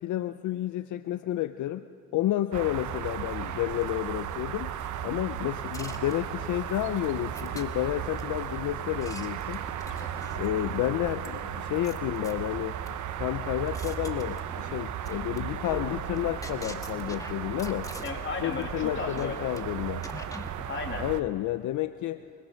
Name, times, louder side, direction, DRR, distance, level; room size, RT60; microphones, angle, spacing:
voice 1, 0.0-1.9 2.1-4.7 5.0-9.6 10.4-12.8 13.2-17.9 18.4-20.0 21.0-22.2, left 14 dB, 75° left, 11 dB, 0.7 m, -30 dB
sound 1, 2.5-21.2, right 9 dB, 75° right, 1.0 m, -35 dB
sound 2, 5.7-6.5 7.3-8.2 8.8-10.6 11.2-11.3 11.8-12.9 13.4-14.8 15.0-15.4 15.6-18.3 18.6-18.8 19.2-19.6 20.0-20.7, left 2 dB, 10° left, 1.9 m, -43 dB
voice 2, 9.8-10.2 18.0-19.5 20.7-21.0, left 5 dB, 40° left, 3 dB, 2.8 m, -35 dB
25.5 x 21.0 x 6.5 m, 2.7 s
cardioid pair, 90°, 30 cm